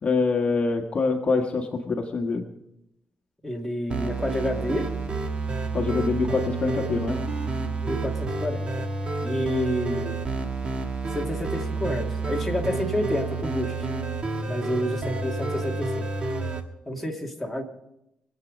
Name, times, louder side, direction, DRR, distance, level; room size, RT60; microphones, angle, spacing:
voice 1, 0.0-2.4 5.7-7.2, left 4 dB, 45° left, 3 dB, 1.5 m, -25 dB
voice 2, 3.4-4.9 7.8-8.7 9.2-10.2 11.1-13.9 14.4-16.1 16.9-17.6, equal, ahead, -1 dB, 2.4 m, -29 dB
sound 1, 3.9-16.6, right 3 dB, 40° right, 1.6 m, -29 dB
24.5 x 8.4 x 5.2 m, 0.85 s
cardioid pair, 115°, 3 cm